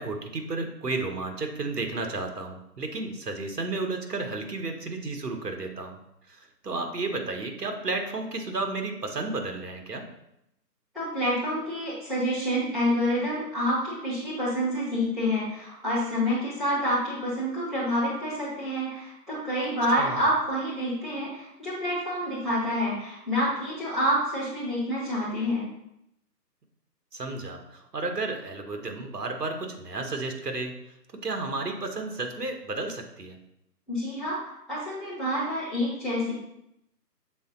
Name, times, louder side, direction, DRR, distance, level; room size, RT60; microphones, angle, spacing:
voice 1, 0.0-6.0 6.3-10.0 20.0-20.3 27.1-33.4, right 3 dB, 70° right, 4 dB, 1.4 m, -32 dB
voice 2, 10.9-25.7 33.9-36.3, equal, ahead, -16 dB, 0.8 m, -28 dB
6.9 x 4.0 x 3.8 m, 0.81 s
figure-of-eight pair, 165°, 49 cm